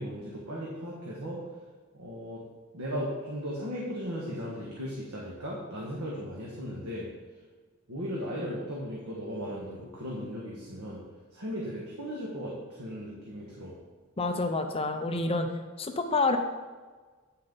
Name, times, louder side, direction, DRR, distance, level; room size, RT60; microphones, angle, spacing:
voice 1, 0.0-1.4 1.9-2.4 2.7-7.1 7.9-11.0 11.3-13.7, equal, 75° right, -4 dB, 1.4 m, -36 dB
voice 2, 14.2-15.5 15.8-16.4, left 3 dB, 25° left, 6 dB, 0.6 m, -28 dB
8.9 x 5.7 x 3.9 m, 1.4 s
head